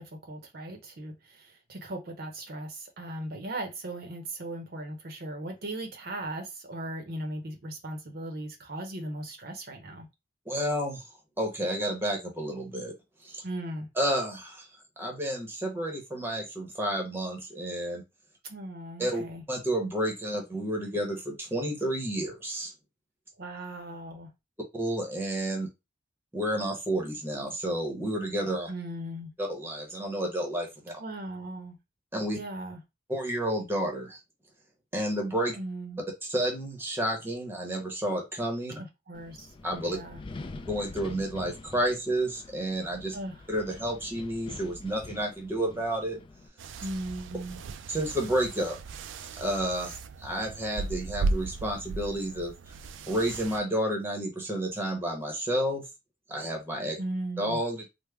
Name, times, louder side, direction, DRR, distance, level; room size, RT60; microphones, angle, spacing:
voice 1, 0.0-10.1 13.4-13.9 18.5-19.4 23.4-24.3 28.7-29.3 31.0-31.8 32.3-32.8 35.5-36.0 39.1-39.4 39.9-40.2 43.1-43.4 46.8-47.6 57.0-57.6, right 1 dB, 55° right, 0.7 m, -38 dB
voice 2, 10.5-11.0 11.4-12.9 13.2-13.4 13.9-14.7 15.0-18.0 19.0-19.2 19.5-22.7 24.7-25.7 26.3-28.7 29.4-30.9 32.1-32.4 33.1-34.2 34.9-35.6 36.2-38.8 39.6-40.0 40.7-43.2 43.5-46.2 47.9-48.8 49.4-52.5 53.1-55.9 56.3-57.0 57.4-57.9, right 1 dB, 10° right, 0.8 m, -30 dB
Wind, 39.1-46.5, left 2 dB, 25° left, 0.3 m, -45 dB
sound 1, 46.6-53.6, right 3 dB, 75° right, 0.4 m, -36 dB
3.4 x 2.1 x 3.4 m
head